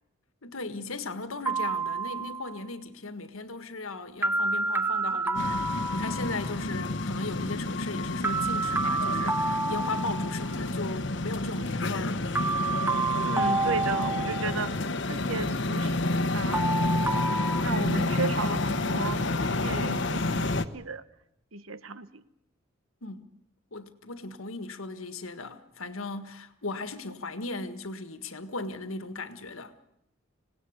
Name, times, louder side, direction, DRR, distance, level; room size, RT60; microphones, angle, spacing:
voice 1, 0.4-12.3 23.0-23.3 23.7-29.7, left 3 dB, 90° left, 1.7 m, -37 dB
sound 1, 1.5-2.6 4.2-6.5 8.2-10.6 12.4-14.7 16.5-17.6, right 3 dB, 10° right, 0.8 m, -29 dB
sound 2, 5.3-20.6, left 2 dB, 60° left, 1.0 m, -29 dB
voice 2, 13.2-14.7 15.1-17.2 17.6-21.0 21.5-22.2, right 3 dB, 85° right, 1.1 m, -35 dB
26.0 x 18.0 x 8.1 m
head